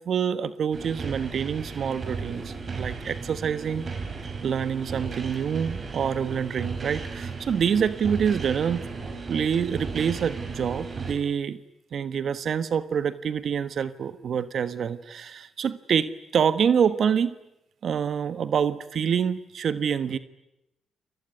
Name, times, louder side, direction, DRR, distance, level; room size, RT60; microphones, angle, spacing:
voice 1, 0.0-3.8 4.4-8.8 9.3-11.6 11.9-17.4 17.8-20.2, right 7 dB, 60° right, 14 dB, 1.3 m, -26 dB
sound 1, 0.7-11.1, right 4 dB, 45° right, 5.2 m, -35 dB
29.0 x 20.5 x 9.6 m, 0.90 s
supercardioid pair, 55°, 0 cm